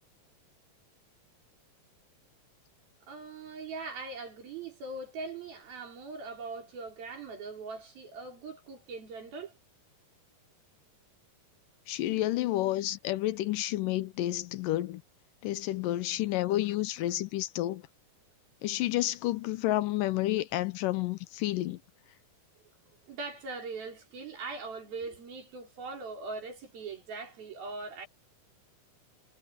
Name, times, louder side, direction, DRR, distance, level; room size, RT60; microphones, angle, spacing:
voice 1, 3.1-9.5 23.1-28.1, right 4 dB, 85° right, 7.1 m, -41 dB
voice 2, 11.9-15.0 15.4-17.8 18.6-21.8, left 15 dB, 75° left, 2.3 m, -30 dB
omnidirectional pair, 4.1 m